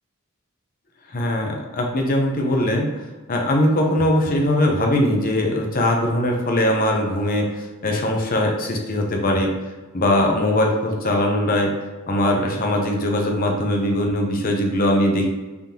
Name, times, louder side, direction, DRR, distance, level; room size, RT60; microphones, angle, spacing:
voice 1, 1.1-2.9 3.3-9.5 9.9-11.7 12.1-15.3, left 1 dB, 40° left, 1 dB, 0.7 m, -21 dB
3.6 x 3.6 x 2.9 m, 1.2 s
head